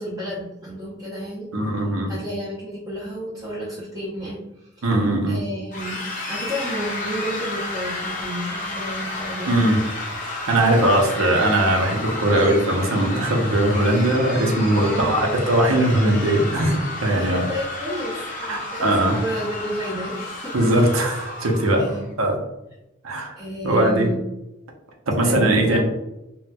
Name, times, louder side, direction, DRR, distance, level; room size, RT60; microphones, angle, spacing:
voice 1, 0.0-1.5 2.1-4.8 5.3-9.8 14.7-15.4 17.1-18.9 19.2-20.9 21.8-22.0 23.4-24.2 25.2-25.8, equal, 15° right, -9 dB, 0.7 m, -31 dB
voice 2, 1.5-2.1 4.8-5.4 9.5-9.8 10.5-17.4 18.5-19.2 20.5-21.8 22.2-22.4 23.0-23.3 23.6-24.1 25.1-25.8, right 1 dB, 85° right, 1 dB, 0.7 m, -20 dB
sound 1, 5.7-22.0, left 2 dB, 40° left, 0.6 m, -32 dB
4.2 x 2.2 x 2.2 m, 0.94 s
head